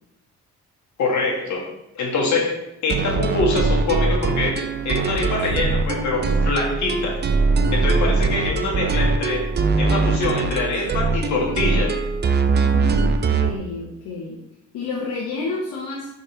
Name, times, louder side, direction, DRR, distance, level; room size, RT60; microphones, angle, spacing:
voice 1, 1.0-1.7 2.0-7.2 7.7-9.5 9.8-12.0, left 3 dB, 70° left, -2 dB, 1.9 m, -24 dB
sound 1, 2.9-13.6, right 4 dB, 35° right, 0.5 m, -21 dB
voice 2, 12.6-14.4 14.7-16.1, left 3 dB, 85° left, -3 dB, 1.0 m, -30 dB
5.2 x 4.1 x 4.4 m, 0.85 s
cardioid pair, 90°, 30 cm